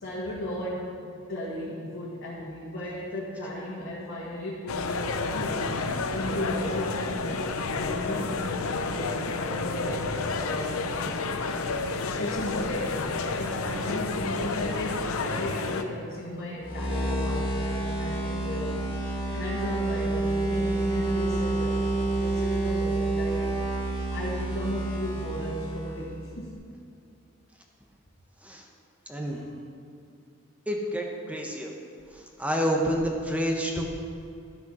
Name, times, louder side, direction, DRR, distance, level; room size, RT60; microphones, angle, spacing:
voice 1, 0.0-5.7 6.1-9.2 9.4-10.7 12.2-18.8 19.3-21.8 22.2-23.5 24.1-26.6 29.2-29.4, left 1 dB, 55° left, -7 dB, 1.7 m, -35 dB
sound 1, 4.7-15.8, left 3 dB, 85° left, 0.7 m, -30 dB
sound 2, 16.6-26.1, right 2 dB, 25° left, 2.7 m, -28 dB
voice 2, 29.1-29.4 30.7-31.7 32.1-33.9, equal, 5° right, 0 dB, 1.1 m, -29 dB
12.0 x 6.9 x 5.5 m, 2.5 s
head